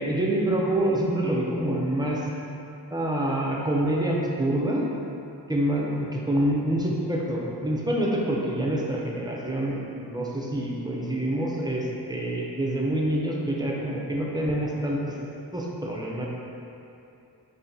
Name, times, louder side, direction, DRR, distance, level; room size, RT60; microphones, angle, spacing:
voice 1, 0.0-2.2 2.9-4.9 5.5-15.1 15.5-16.3, right 1 dB, 10° right, -3 dB, 0.6 m, -26 dB
4.4 x 2.8 x 3.8 m, 2.7 s
wide cardioid pair, 65°, 41 cm